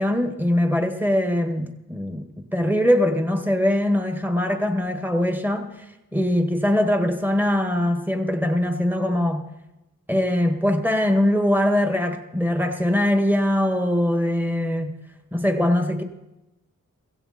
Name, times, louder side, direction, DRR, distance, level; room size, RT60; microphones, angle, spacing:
voice 1, 0.0-5.7 6.1-9.5 10.1-15.0 15.3-16.0, left 1 dB, 5° right, 1.8 m, -22 dB
16.5 x 15.5 x 4.3 m
wide cardioid pair, 70°, 32 cm